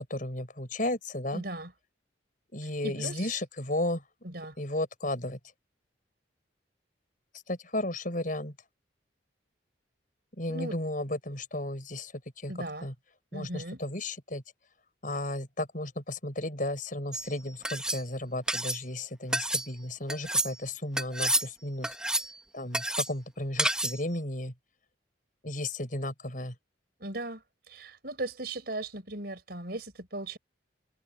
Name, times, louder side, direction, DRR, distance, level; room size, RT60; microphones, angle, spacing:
voice 1, 0.0-1.4 2.5-4.0 4.6-5.4 7.5-8.5 10.4-12.1 12.4-12.5 12.8-12.9 13.3-14.4 15.0-22.0 22.5-24.5 25.4-26.5, left 1 dB, 45° left, 6.7 m, -34 dB
voice 2, 1.3-1.7 2.8-3.3 4.2-4.5 10.5-10.8 12.5-12.9 13.3-13.8 27.0-27.4 27.7-30.4, right 2 dB, 55° right, 5.2 m, -37 dB
sound 1, 17.1-17.3 17.6-18.0 18.5-18.8 19.3-19.7 20.1-20.5 21.0-21.5 21.8-22.3 22.7-23.1 23.6-24.0, right 1 dB, 5° right, 1.4 m, -29 dB
head